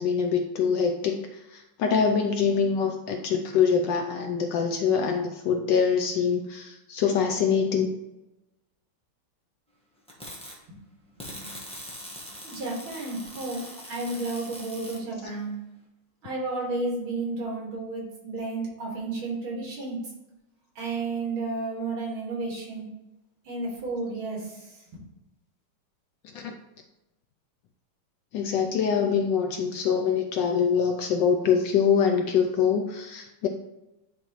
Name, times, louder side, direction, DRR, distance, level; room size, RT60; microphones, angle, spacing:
voice 1, 0.0-7.9 26.3-26.5 28.3-33.5, left 6 dB, 75° left, 4 dB, 1.1 m, -24 dB
sound 1, 10.1-10.5 11.2-15.0, equal, 5° left, 0.8 m, -42 dB
voice 2, 12.4-15.5 16.2-20.0 20.8-22.9 23.4-24.8, right 3 dB, 70° right, -3 dB, 2.7 m, -32 dB
10.0 x 3.5 x 3.0 m, 0.94 s
omnidirectional pair, 2.3 m